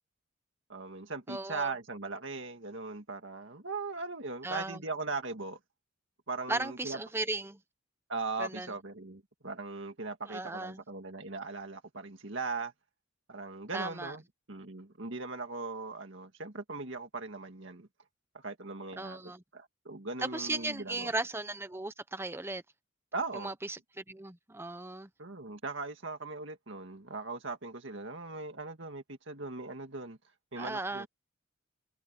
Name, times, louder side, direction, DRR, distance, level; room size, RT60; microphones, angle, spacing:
voice 1, 0.7-5.6 6.3-7.0 8.1-12.7 13.3-14.2 14.5-17.9 18.3-21.1 23.1-23.5 25.2-30.2 30.5-31.1, right 3 dB, 65° right, 2.0 m, -39 dB
voice 2, 1.3-1.7 4.4-4.8 6.5-7.6 8.4-8.7 10.3-10.8 13.7-14.2 19.0-19.4 20.2-22.6 23.3-25.1 30.6-31.1, right 2 dB, 10° right, 0.8 m, -36 dB
head